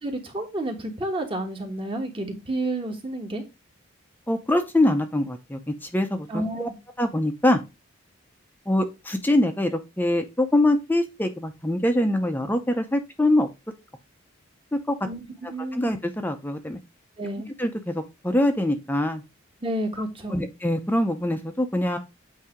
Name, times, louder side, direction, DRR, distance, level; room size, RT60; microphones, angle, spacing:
voice 1, 0.0-3.4 6.3-6.7 15.0-15.2 15.5-15.9 17.2-17.5 19.6-20.4, right 1 dB, 25° right, 3 dB, 1.3 m, -30 dB
voice 2, 4.3-6.7 7.0-7.6 8.7-13.5 14.7-15.0 15.4-16.8 17.6-19.2 20.3-22.0, left 1 dB, 10° left, 6 dB, 0.6 m, -24 dB
8.4 x 2.8 x 5.0 m, 0.25 s
head